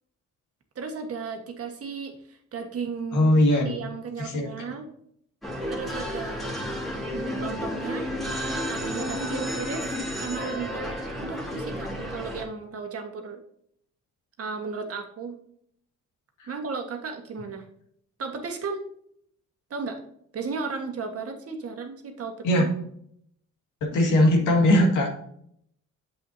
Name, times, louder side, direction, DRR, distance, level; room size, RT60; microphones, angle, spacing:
voice 1, 0.7-3.3 3.6-4.9 5.7-6.6 7.1-8.1 8.7-9.9 10.2-13.4 14.4-15.3 16.5-17.6 18.2-18.8 19.7-20.0 20.3-22.7, right 5 dB, 50° right, 4 dB, 1.5 m, -34 dB
voice 2, 3.1-3.8 4.2-4.5 16.4-16.5 22.4-22.6 23.8-25.1, left 1 dB, 85° left, 1 dB, 2.1 m, -20 dB
sound 1, 5.4-12.4, equal, ahead, 2.1 m, -32 dB
8.5 x 7.5 x 2.7 m, 0.68 s
cardioid pair, 90°, 30 cm